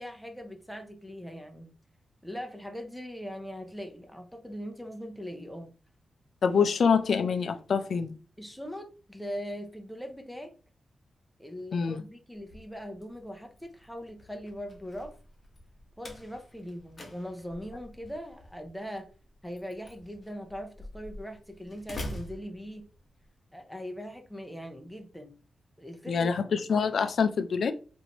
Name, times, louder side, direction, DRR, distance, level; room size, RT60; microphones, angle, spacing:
voice 1, 0.0-1.7 2.2-5.7 8.4-10.5 11.4-15.1 16.0-19.1 19.4-22.9 23.5-25.4 25.8-26.3, equal, ahead, 0.5 m, -40 dB
voice 2, 6.4-8.2 11.7-12.0 26.1-27.7, left 6 dB, 65° left, 0.3 m, -26 dB
Slam, 12.3-23.2, left 1 dB, 35° left, 0.8 m, -46 dB
3.1 x 2.5 x 2.8 m
wide cardioid pair, 120°, 0 cm